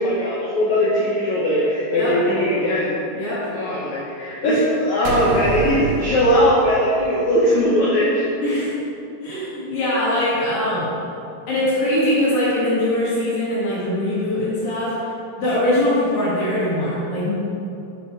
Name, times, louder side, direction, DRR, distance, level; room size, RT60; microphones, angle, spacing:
voice 1, 0.0-2.9 3.5-8.2, equal, 75° left, -5 dB, 1.7 m, -19 dB
voice 2, 3.1-3.5 4.4-4.6 8.4-8.7 9.2-10.9 11.5-15.1 15.4-17.3, left 1 dB, 60° left, -9 dB, 3.7 m, -22 dB
sound 1, 5.1-7.6, right 5 dB, 85° right, 3.0 m, -28 dB
7.5 x 6.6 x 4.9 m, 2.8 s
omnidirectional pair, 4.9 m